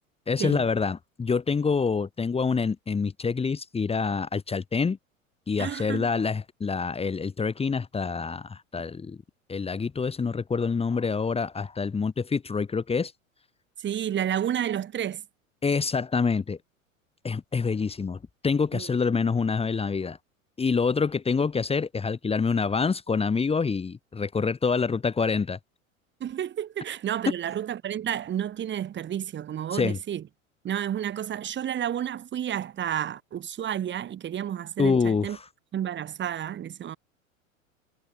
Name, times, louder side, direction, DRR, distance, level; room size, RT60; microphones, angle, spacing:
voice 1, 0.3-5.0 5.5-9.2 9.5-13.1 15.6-16.6 17.2-20.2 20.6-25.6 29.7-30.0 34.8-35.4, left 5 dB, 15° left, 3.1 m, -26 dB
voice 2, 5.6-6.1 13.8-15.2 18.7-18.9 26.2-30.2 30.6-35.4 35.7-37.0, right 10 dB, 25° right, 4.4 m, -31 dB
figure-of-eight pair, 90°, 41 cm